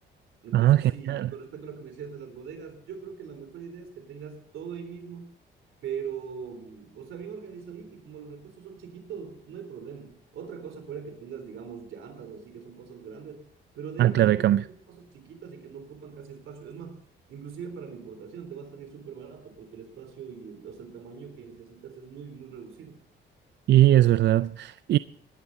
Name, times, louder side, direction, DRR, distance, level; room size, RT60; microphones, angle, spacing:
voice 1, 0.4-5.3 5.8-13.5 13.7-17.0 17.3-23.0, right 6 dB, 80° right, 3.6 m, -41 dB
voice 2, 14.0-14.6 23.7-25.0, right 13 dB, 60° right, 0.4 m, -19 dB
17.5 x 11.0 x 4.0 m
cardioid pair, 90°, 20 cm